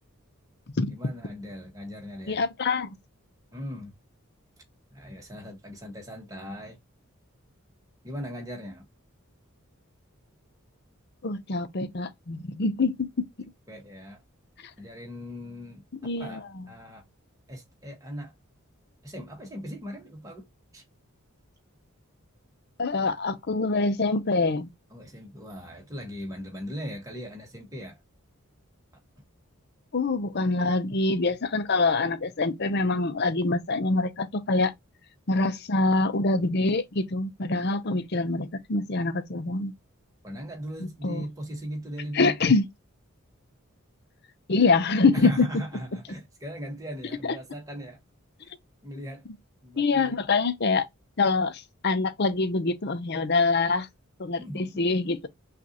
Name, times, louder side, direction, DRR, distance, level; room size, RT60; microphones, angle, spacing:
voice 1, 0.9-2.5 3.5-3.9 4.9-6.8 8.0-8.8 13.7-14.2 14.8-17.0 17.5-18.3 19.0-20.5 20.7-20.8 24.9-28.0 40.2-42.3 45.1-48.0 48.4-48.5 48.8-49.3 49.6-50.2 54.4-54.8, equal, 15° right, 1.3 m, -39 dB
voice 2, 2.3-2.9 11.2-13.3 16.0-16.6 22.8-24.7 29.9-34.7 35.3-39.7 41.0-41.3 42.1-42.7 44.5-45.5 49.8-50.9 51.2-53.9 54.2-55.3, left 3 dB, 50° left, 0.6 m, -25 dB
5.9 x 2.5 x 2.8 m
head